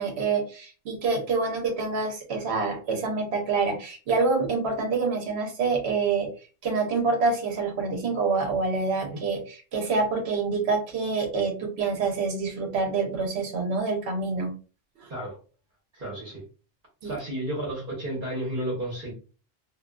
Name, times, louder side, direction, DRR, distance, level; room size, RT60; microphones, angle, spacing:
voice 1, 0.0-6.3 6.6-14.5 17.0-17.1, right 4 dB, 80° right, 2 dB, 1.0 m, -26 dB
voice 2, 15.9-16.4 17.0-19.1, right 1 dB, 55° right, -4 dB, 1.1 m, -32 dB
2.5 x 2.4 x 2.2 m, 0.36 s
omnidirectional pair, 1.1 m